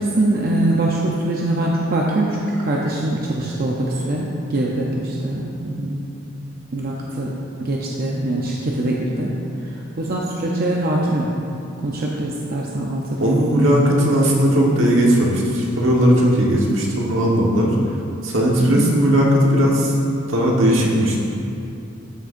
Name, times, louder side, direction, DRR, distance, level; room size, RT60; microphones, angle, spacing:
voice 1, 0.0-6.1 6.7-7.3 7.6-9.3 10.0-11.3 11.8-13.4 18.6-18.9, right 1 dB, 50° right, -3 dB, 0.6 m, -23 dB
voice 2, 13.2-17.7 18.2-19.9 20.3-21.2, equal, 75° right, -3 dB, 1.4 m, -17 dB
12.5 x 6.4 x 2.6 m, 2.7 s
head